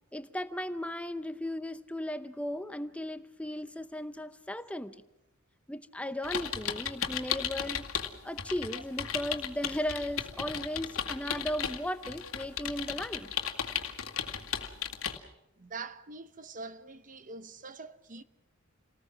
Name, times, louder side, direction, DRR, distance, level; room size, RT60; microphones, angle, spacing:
voice 1, 0.1-5.0 5.7-7.9 8.2-13.3, equal, 5° left, 0.7 m, -36 dB
sound 1, 6.2-8.1 8.4-15.2, left 8 dB, 80° left, 2.1 m, -35 dB
voice 2, 15.6-18.2, right 4 dB, 40° right, 0.9 m, -44 dB
29.0 x 19.0 x 6.2 m
head